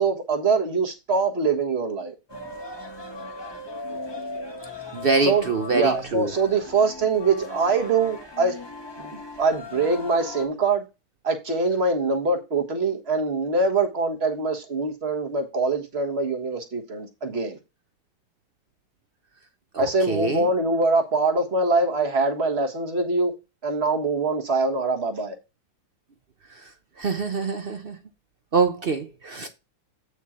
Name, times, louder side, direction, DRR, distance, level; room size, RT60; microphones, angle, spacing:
voice 1, 0.0-2.1 5.2-8.6 9.0-10.8 11.2-17.6 19.8-23.3 23.6-25.3, right 3 dB, 35° right, 1.4 m, -23 dB
sound 1, 2.3-10.5, left 2 dB, 15° left, 1.1 m, -37 dB
voice 2, 4.9-6.3 19.7-20.5 27.0-28.0 28.5-29.5, right 4 dB, 65° right, 0.5 m, -25 dB
8.4 x 4.9 x 4.2 m
omnidirectional pair, 2.1 m